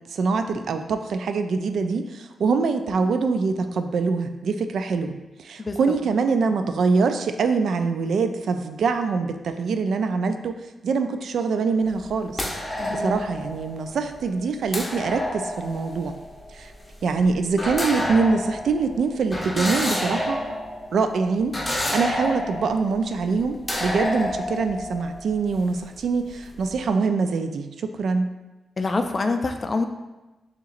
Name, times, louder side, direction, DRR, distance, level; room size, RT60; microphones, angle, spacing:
voice 1, 0.1-12.4 12.9-16.1 16.5-16.7 17.0-20.6 20.9-28.3, right 4 dB, 70° right, 7 dB, 0.3 m, -24 dB
voice 2, 5.6-6.0 12.8-13.3 28.8-29.8, left 3 dB, 30° left, 6 dB, 0.3 m, -26 dB
sound 1, 11.8-26.0 26.3-26.7, left 1 dB, 10° left, 0.8 m, -30 dB
6.7 x 2.9 x 2.4 m, 1.1 s
wide cardioid pair, 130°, 0 cm